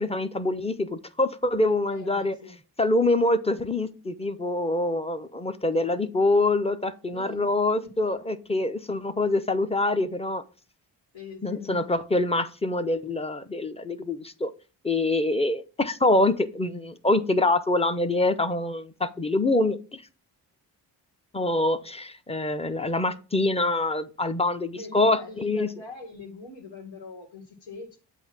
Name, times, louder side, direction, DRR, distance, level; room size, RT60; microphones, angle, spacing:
voice 1, 0.0-2.3 2.8-10.4 11.4-14.5 14.8-20.0 21.3-25.7, left 2 dB, 15° left, 0.7 m, -25 dB
voice 2, 1.9-2.6 5.7-5.9 7.1-7.5 7.8-8.2 11.1-11.9 24.7-28.0, left 3 dB, 75° left, 1.9 m, -43 dB
7.9 x 2.7 x 6.0 m
cardioid pair, 65°, 44 cm